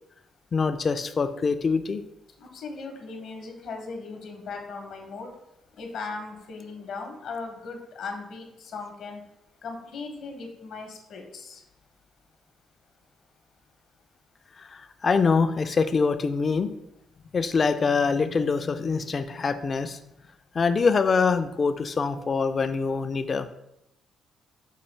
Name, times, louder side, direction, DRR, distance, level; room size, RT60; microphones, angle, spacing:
voice 1, 0.5-2.0 14.6-16.7 17.3-20.0 20.5-23.5, left 5 dB, 40° left, 10 dB, 0.3 m, -24 dB
voice 2, 2.4-5.4 5.7-9.2 9.6-11.6, left 4 dB, 70° left, 3 dB, 0.8 m, -38 dB
5.5 x 2.4 x 3.2 m, 0.84 s
cardioid pair, 90°, 0 cm